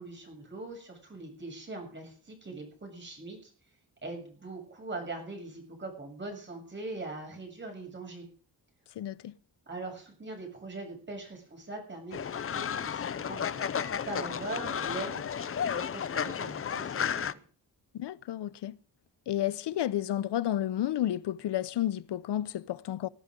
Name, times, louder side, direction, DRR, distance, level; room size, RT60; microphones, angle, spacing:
voice 1, 0.0-3.5 4.0-8.3 9.7-17.4, right 2 dB, 25° right, 7.4 m, -42 dB
voice 2, 9.0-9.4 17.9-18.8 19.3-23.1, left 12 dB, 85° left, 0.8 m, -31 dB
Fowl, 12.1-17.3, left 8 dB, 35° left, 0.6 m, -33 dB
20.5 x 12.0 x 3.8 m
wide cardioid pair, 165°, 40 cm